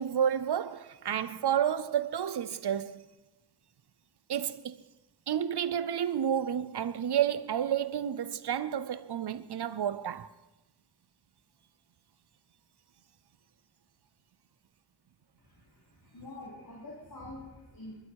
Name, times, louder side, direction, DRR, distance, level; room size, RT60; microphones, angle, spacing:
voice 1, 0.0-3.0 4.3-4.8 5.3-10.3, right 9 dB, 90° right, 0.6 m, -30 dB
voice 2, 15.4-18.0, left 2 dB, 60° left, 4.2 m, -46 dB
21.0 x 12.0 x 4.7 m
wide cardioid pair, 75°, 39 cm